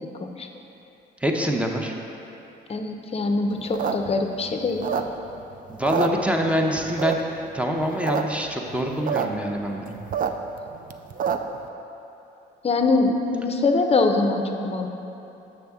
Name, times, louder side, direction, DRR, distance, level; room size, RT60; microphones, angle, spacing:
voice 1, 1.2-1.9 5.7-7.2 7.5-10.0, equal, 5° right, 1 dB, 0.6 m, -25 dB
voice 2, 2.7-4.8 12.6-14.9, left 3 dB, 30° left, 5 dB, 0.6 m, -23 dB
sound 1, 3.6-5.4 5.7-6.6 7.0-7.4 7.8-8.2 8.5-8.6 8.7-9.3 9.6-11.6, right 7 dB, 45° right, 0.4 m, -27 dB
6.6 x 6.4 x 3.5 m, 3.0 s
cardioid pair, 90°, 20 cm